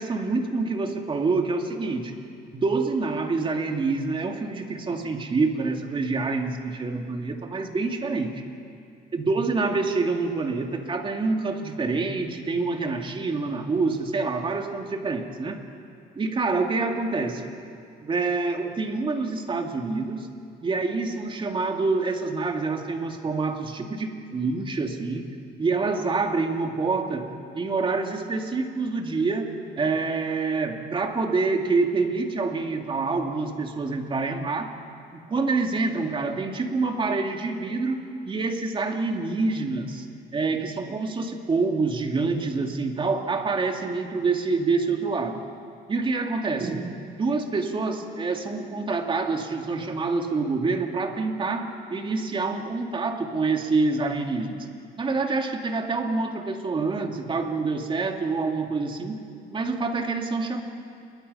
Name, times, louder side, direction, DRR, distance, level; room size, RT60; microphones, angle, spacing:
voice 1, 0.0-2.1 2.5-8.3 9.1-15.6 16.2-17.5 18.0-20.3 20.6-25.2 25.6-27.3 27.5-34.7 35.1-40.1 40.3-45.4 45.9-54.7 55.0-59.2 59.5-60.6, right 3 dB, 30° right, 3 dB, 2.5 m, -26 dB
28.0 x 22.5 x 5.6 m, 2.4 s
cardioid pair, 110°, 17 cm